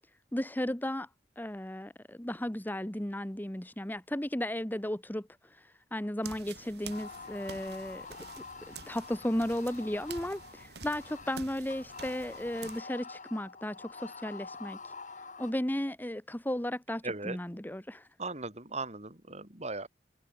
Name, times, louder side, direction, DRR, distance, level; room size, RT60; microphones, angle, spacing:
voice 1, 0.3-1.1 1.4-8.1 8.7-14.9 15.4-18.1, left 1 dB, 10° left, 1.2 m, -35 dB
sound 1, 6.2-12.8, right 5 dB, 65° right, 5.6 m, -49 dB
sound 2, 6.9-15.5, left 4 dB, 45° left, 7.9 m, -47 dB
voice 2, 17.0-17.4 18.2-19.9, right 3 dB, 40° right, 6.0 m, -38 dB
head